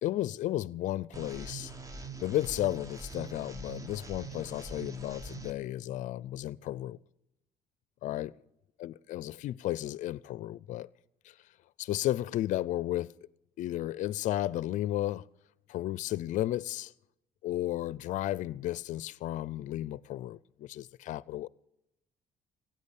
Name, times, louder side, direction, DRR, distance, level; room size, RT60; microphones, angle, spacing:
voice 1, 0.0-1.7 2.2-7.0 8.0-8.3 8.8-10.9 11.2-11.3 11.8-13.1 13.6-15.2 15.7-16.9 17.4-21.5, left 14 dB, 65° left, 0.4 m, -33 dB
sound 1, 1.1-5.5, right 3 dB, 25° right, 1.3 m, -44 dB
16.0 x 9.1 x 8.2 m
cardioid pair, 100°, 14 cm